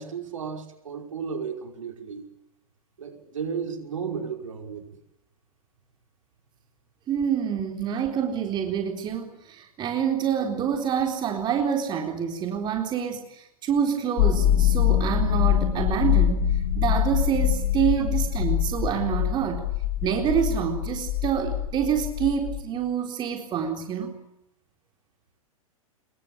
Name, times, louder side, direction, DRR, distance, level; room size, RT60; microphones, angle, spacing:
voice 1, 0.0-2.3 3.0-5.0, right 6 dB, 65° right, 4 dB, 5.5 m, -34 dB
voice 2, 7.1-16.5 16.8-19.6 20.0-24.1, right 8 dB, 25° right, 4 dB, 4.0 m, -27 dB
sound 1, 14.2-22.6, left 10 dB, 45° left, 4.0 m, -24 dB
26.0 x 23.0 x 9.1 m, 0.82 s
figure-of-eight pair, 100°, 18 cm